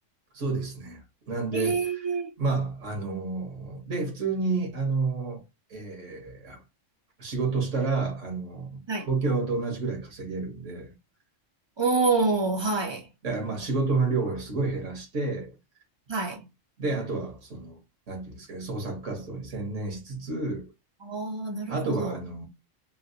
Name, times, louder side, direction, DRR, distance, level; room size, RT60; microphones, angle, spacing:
voice 1, 0.3-2.1 2.4-5.4 5.7-6.6 7.2-10.9 13.2-15.6 16.8-17.8 18.1-20.7 21.7-22.5, right 3 dB, 75° right, 1.4 m, -30 dB
voice 2, 1.5-2.3 8.9-9.1 11.8-13.1 16.1-16.5 21.0-22.2, right 4 dB, 45° right, 0.3 m, -27 dB
3.2 x 2.9 x 2.7 m
omnidirectional pair, 1.3 m